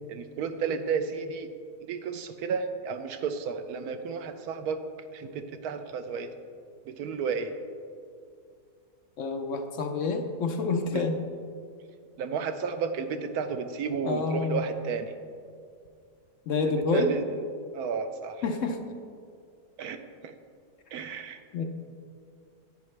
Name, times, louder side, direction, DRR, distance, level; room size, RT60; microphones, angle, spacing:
voice 1, 0.1-1.5 1.8-4.8 5.1-6.3 6.9-7.5 10.9-11.1 12.2-15.1 16.6-17.2 17.7-18.4 19.8-20.3 20.9-21.4, right 6 dB, 75° right, 8 dB, 1.1 m, -32 dB
voice 2, 9.2-11.2 14.0-14.6 16.5-17.1 18.4-18.8 21.5-21.6, left 4 dB, 65° left, 5 dB, 0.8 m, -28 dB
10.5 x 8.9 x 3.2 m, 2.3 s
omnidirectional pair, 1.7 m